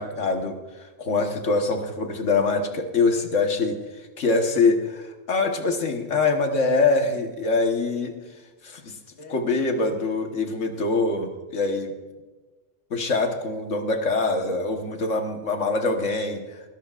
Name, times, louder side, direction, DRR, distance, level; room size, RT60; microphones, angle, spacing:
voice 1, 0.0-8.1 8.6-11.9 12.9-16.6, left 3 dB, 70° left, 4 dB, 1.7 m, -24 dB
21.0 x 13.5 x 2.5 m, 1.2 s
omnidirectional pair, 1.3 m